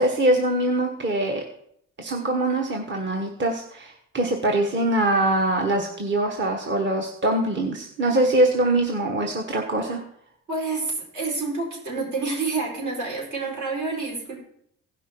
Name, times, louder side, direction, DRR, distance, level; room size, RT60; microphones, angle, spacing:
voice 1, 0.0-1.4 2.0-10.0, right 1 dB, 40° right, 2 dB, 1.3 m, -23 dB
voice 2, 10.5-14.4, right 3 dB, 70° right, -2 dB, 4.6 m, -28 dB
16.0 x 5.7 x 4.5 m, 0.70 s
cardioid pair, 90°, 30 cm